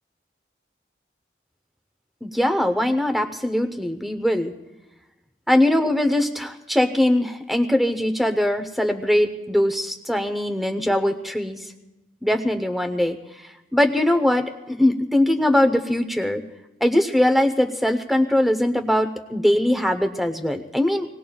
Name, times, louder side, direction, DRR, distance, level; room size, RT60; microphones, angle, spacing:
voice 1, 2.2-4.5 5.5-11.6 12.2-13.2 13.7-16.4 16.8-21.1, left 1 dB, ahead, 6 dB, 0.8 m, -21 dB
27.0 x 19.0 x 2.3 m, 1.0 s
head